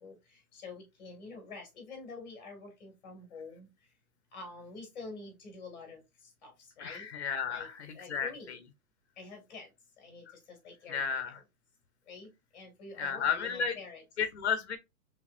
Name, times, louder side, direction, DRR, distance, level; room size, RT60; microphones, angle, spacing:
voice 1, 0.0-3.7 4.3-6.0 6.4-6.5 6.8-7.1 7.5-7.7 7.9-8.5 9.2-9.7 10.0-11.4 12.1-14.0, left 3 dB, 30° left, 1.8 m, -47 dB
voice 2, 6.8-8.6 10.9-11.4 13.0-13.8 14.2-14.8, left 6 dB, 45° left, 0.9 m, -33 dB
4.6 x 3.6 x 2.4 m
hypercardioid pair, 180°, 45 cm